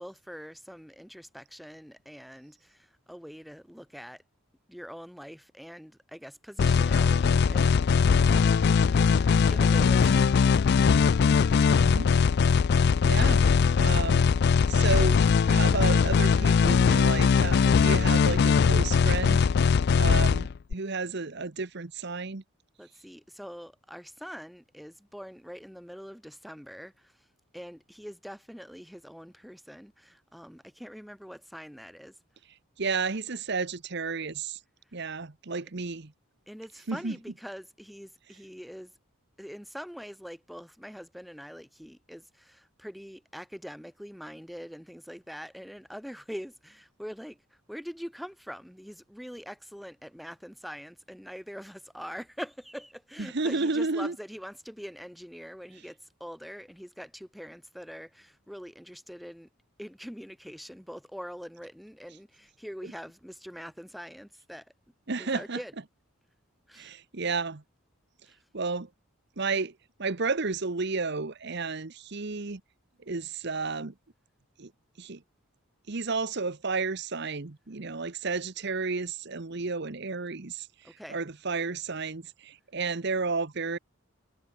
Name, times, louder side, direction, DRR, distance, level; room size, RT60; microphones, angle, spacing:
voice 1, 0.0-4.2 4.7-10.3 10.7-11.1 22.8-27.1 27.5-32.1 36.5-38.9 39.4-47.4 47.7-59.5 59.8-64.7 65.2-65.7 66.7-66.9 68.3-68.4 80.8-81.2, equal, ahead, 4.3 m, -44 dB
sound 1, 6.6-20.7, left 5 dB, 50° left, 0.3 m, -21 dB
voice 2, 11.7-12.1 12.7-19.5 19.9-22.4 32.4-34.6 34.9-36.1 36.9-37.2 53.2-54.1 62.8-62.9 65.1-65.6 66.7-67.6 68.5-68.9 69.4-69.7 70.0-72.6 73.1-73.9 74.6-74.7 75.0-75.2 75.9-83.8, right 4 dB, 50° right, 1.0 m, -32 dB
head